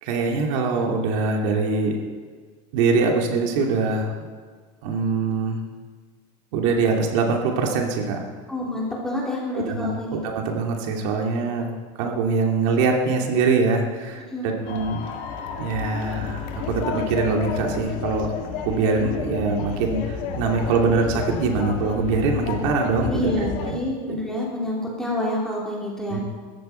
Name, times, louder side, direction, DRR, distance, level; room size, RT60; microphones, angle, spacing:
voice 1, 0.0-2.0 2.7-4.1 4.8-5.6 6.5-8.2 9.5-11.7 12.0-15.0 15.6-18.3 18.6-23.3 23.6-23.8 24.1-24.2 26.1-26.2, right 4 dB, 70° right, 1 dB, 2.6 m, -23 dB
voice 2, 8.5-10.2 14.3-14.5 23.1-26.2, left 1 dB, 5° left, -4 dB, 3.6 m, -28 dB
sound 1, 14.6-23.7, left 7 dB, 50° left, 1.9 m, -31 dB
20.5 x 15.0 x 4.4 m, 1.5 s
cardioid pair, 170°, 16 cm